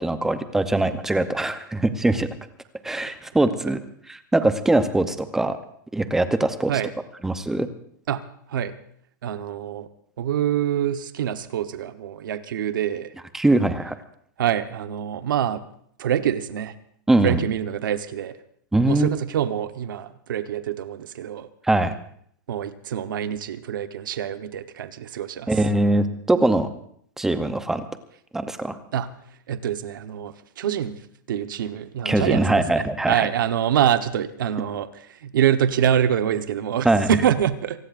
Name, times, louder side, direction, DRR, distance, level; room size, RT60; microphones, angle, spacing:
voice 1, 0.0-2.3 2.8-3.8 4.3-5.6 5.9-6.7 7.2-7.7 13.3-13.9 17.1-17.4 18.7-19.1 21.6-21.9 25.5-26.7 27.2-27.8 28.3-28.7 32.0-33.3 36.8-37.1, right 2 dB, 5° right, 10 dB, 0.7 m, -21 dB
voice 2, 9.2-9.9 10.2-13.1 14.4-15.6 16.0-16.7 17.2-18.4 18.9-21.5 22.5-25.6 28.9-29.1 29.5-31.0 31.3-37.8, right 9 dB, 85° right, 10 dB, 1.1 m, -25 dB
27.0 x 18.0 x 2.6 m, 0.64 s
supercardioid pair, 170°, 11 cm